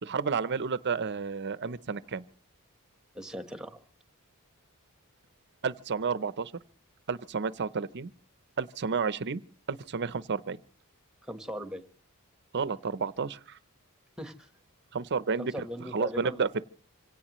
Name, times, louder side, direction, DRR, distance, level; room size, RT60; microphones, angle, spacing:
voice 1, 0.0-2.2 5.6-6.5 7.1-8.1 8.6-9.4 9.7-10.6 12.5-13.6 14.9-15.5 15.9-16.7, right 5 dB, 50° right, 16 dB, 0.7 m, -31 dB
voice 2, 3.1-3.8 11.2-11.9 14.2-14.5 15.4-16.4, equal, 5° right, 8 dB, 1.3 m, -39 dB
26.0 x 17.5 x 3.1 m, 0.39 s
head